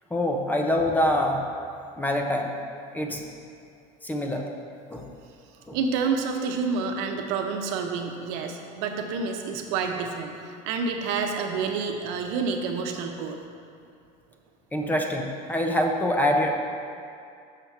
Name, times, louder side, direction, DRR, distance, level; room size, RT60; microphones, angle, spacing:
voice 1, 0.1-1.4 2.0-2.5 2.9-3.2 4.0-4.4 4.9-5.0 5.7-5.8 14.7-16.6, left 1 dB, 10° left, 2 dB, 0.5 m, -25 dB
voice 2, 5.7-13.4 14.8-15.0, right 5 dB, 80° right, 3 dB, 0.8 m, -29 dB
6.6 x 4.6 x 5.8 m, 2.4 s
cardioid pair, 145°, 17 cm